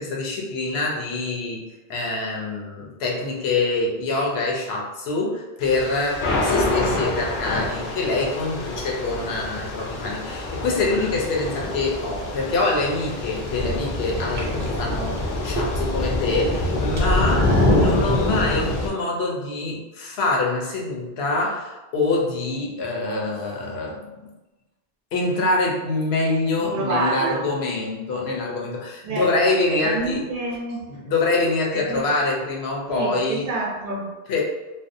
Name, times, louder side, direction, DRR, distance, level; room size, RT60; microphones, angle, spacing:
voice 1, 0.0-24.0 25.1-30.2 30.9-33.5 34.3-34.4, left 3 dB, 90° left, -2 dB, 0.9 m, -25 dB
Thunder / Rain, 5.6-18.9, left 1 dB, 60° left, 0.6 m, -25 dB
sound 1, 13.2-13.6 14.2-16.0 16.3-18.0, right 3 dB, 90° right, 0.9 m, -34 dB
voice 2, 26.6-27.5 29.0-29.3 29.7-30.9 31.7-32.1 32.9-34.1, right 2 dB, 65° right, -1 dB, 0.6 m, -28 dB
2.6 x 2.0 x 2.5 m, 1.1 s
omnidirectional pair, 1.0 m